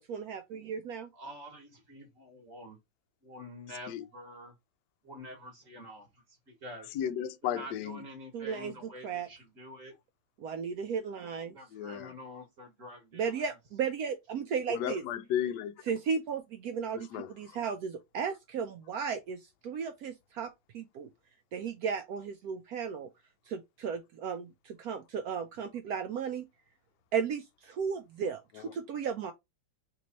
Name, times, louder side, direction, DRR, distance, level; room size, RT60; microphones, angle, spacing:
voice 1, 0.0-1.1 8.3-8.7 9.0-9.3 10.4-11.5 13.1-15.0 15.9-21.1 21.5-23.1 23.5-26.4 27.1-29.3, right 6 dB, 80° right, 0.8 m, -35 dB
voice 2, 1.1-2.8 3.2-4.5 5.0-6.9 7.4-9.9 11.5-13.6, equal, 45° right, 1.5 m, -47 dB
voice 3, 6.9-8.0 11.7-12.1 14.7-15.7 16.9-17.3 28.5-28.7, left 9 dB, 75° left, 1.0 m, -34 dB
3.4 x 3.1 x 3.8 m
omnidirectional pair, 2.1 m